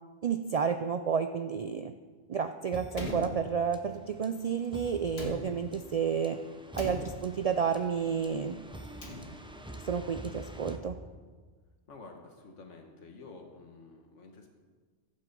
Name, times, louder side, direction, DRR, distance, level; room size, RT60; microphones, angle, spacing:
voice 1, 0.2-1.9 2.3-6.4 6.8-8.6 9.8-11.0, right 6 dB, 70° right, 8 dB, 0.3 m, -31 dB
sound 1, 2.7-11.6, right 1 dB, 5° right, 0.5 m, -47 dB
Slam, 2.9-4.0 5.1-6.0 6.7-7.6 8.7-9.7, left 1 dB, 60° left, 2.3 m, -41 dB
voice 2, 11.9-14.5, left 3 dB, 90° left, 3 dB, 1.6 m, -50 dB
14.5 x 7.5 x 5.3 m, 1.5 s
omnidirectional pair, 1.2 m